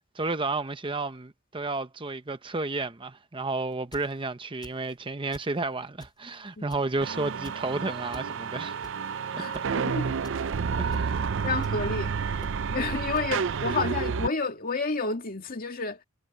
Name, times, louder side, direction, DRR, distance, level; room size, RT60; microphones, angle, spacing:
voice 1, 0.1-8.8 9.3-9.6 10.8-11.2, right 3 dB, 25° right, 0.8 m, -32 dB
sound 1, 3.7-4.1 4.6-4.9 5.3-5.6 6.0-6.4 6.7-7.0 7.4-7.6 8.1-8.3 8.8-9.1 9.5-9.6 10.2-10.3 10.9-11.1 11.6-11.7 12.4-12.5 13.1-13.3, left 1 dB, 20° left, 7.6 m, -47 dB
sound 2, 7.0-14.3, right 6 dB, 65° right, 0.5 m, -30 dB
voice 2, 9.4-10.1 11.4-12.2 12.7-16.0, left 4 dB, 45° left, 2.2 m, -30 dB
head